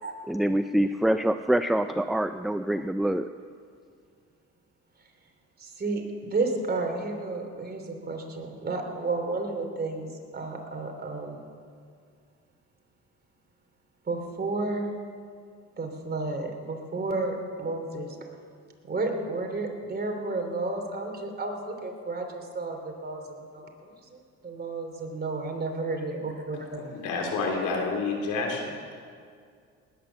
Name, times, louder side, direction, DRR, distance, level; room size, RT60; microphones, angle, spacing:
voice 1, 0.3-3.3, right 1 dB, ahead, 9 dB, 0.4 m, -25 dB
voice 2, 5.6-11.4 14.1-14.9 15.8-18.2 18.8-26.8, right 3 dB, 30° right, 3 dB, 3.1 m, -32 dB
voice 3, 26.5-28.9, left 3 dB, 85° left, 1 dB, 3.2 m, -30 dB
19.0 x 9.6 x 7.1 m, 2.2 s
cardioid pair, 85°, 30 cm